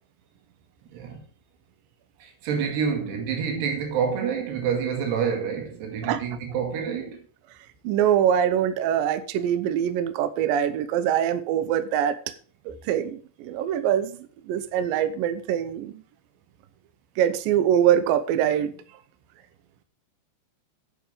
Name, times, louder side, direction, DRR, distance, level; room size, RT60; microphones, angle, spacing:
voice 1, 0.9-1.2 2.2-7.2, right 6 dB, 70° right, 3.9 m, -28 dB
voice 2, 7.8-12.2 12.7-16.0 17.2-18.7, right 10 dB, 85° right, 2.0 m, -23 dB
8.9 x 7.8 x 5.1 m
omnidirectional pair, 5.1 m